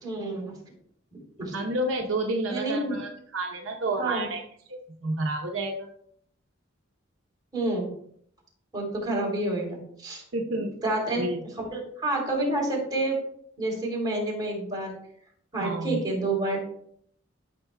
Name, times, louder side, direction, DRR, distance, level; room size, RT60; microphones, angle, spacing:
voice 1, 0.0-0.6 1.4-1.5 2.5-3.0 4.0-4.3 7.5-7.9 8.7-10.2 10.5-11.3 11.6-13.2 13.6-14.9 15.5-16.6, right 2 dB, 20° right, -3 dB, 3.3 m, -29 dB
voice 2, 1.5-4.4 4.7-5.9 10.3-10.8 11.2-11.4 15.6-16.0, right 2 dB, 75° right, 2 dB, 0.9 m, -30 dB
13.5 x 6.7 x 2.2 m, 0.67 s
head